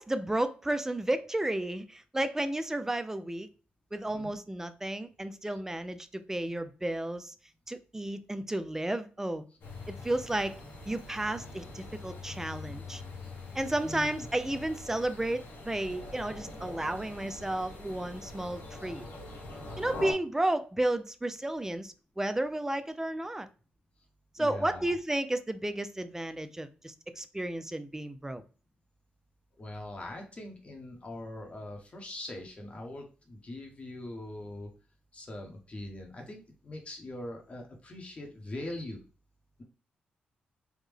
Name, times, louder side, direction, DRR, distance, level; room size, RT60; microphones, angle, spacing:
voice 1, 0.0-3.5 3.9-7.3 7.7-9.5 9.9-10.6 10.9-13.0 13.5-19.0 19.8-23.5 24.4-28.4, right 1 dB, 15° right, 0.3 m, -32 dB
sound 1, 9.6-20.1, left 2 dB, 80° left, 1.2 m, -44 dB
voice 2, 13.8-14.3 24.4-24.9 29.6-34.7 35.1-39.0, left 1 dB, 40° left, 0.9 m, -42 dB
3.5 x 2.1 x 3.3 m
cardioid pair, 75°, 3 cm